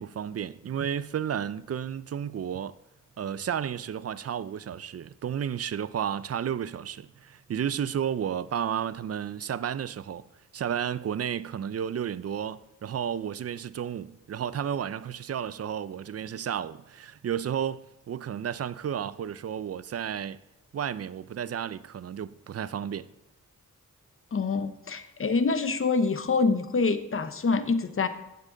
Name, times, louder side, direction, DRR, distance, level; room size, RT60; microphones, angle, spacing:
voice 1, 0.0-2.8 3.2-10.3 10.5-20.4 20.7-23.1, right 9 dB, 50° right, 0.4 m, -32 dB
voice 2, 24.3-28.1, left 4 dB, 40° left, 0.8 m, -26 dB
15.0 x 7.4 x 3.8 m
wide cardioid pair, 120°, 33 cm